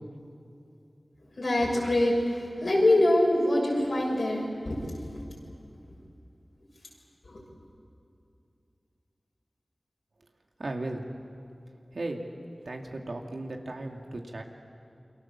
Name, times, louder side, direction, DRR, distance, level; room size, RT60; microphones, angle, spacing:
voice 1, 1.4-4.8 7.2-7.4, left 1 dB, 80° left, -2 dB, 7.0 m, -24 dB
voice 2, 10.6-11.0 11.9-12.3 12.7-14.4, right 2 dB, 85° right, 2 dB, 2.4 m, -36 dB
28.5 x 24.0 x 7.4 m, 2.7 s
wide cardioid pair, 40°, 0 cm